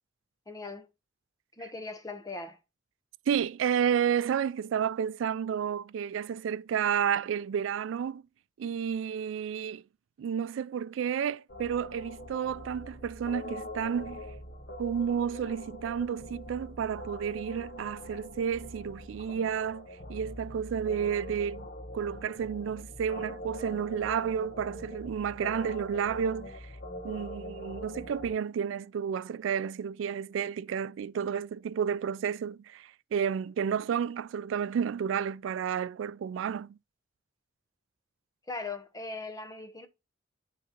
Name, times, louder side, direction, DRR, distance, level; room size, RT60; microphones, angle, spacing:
voice 1, 0.5-0.9 1.6-2.6 38.5-39.9, left 3 dB, 20° left, 0.9 m, -39 dB
voice 2, 3.3-8.2 8.6-9.8 10.2-14.2 14.8-21.7 21.9-26.7 27.0-36.7, right 8 dB, 85° right, 0.3 m, -31 dB
sound 1, 11.5-28.4, left 1 dB, 55° left, 1.2 m, -43 dB
11.0 x 4.0 x 2.9 m
head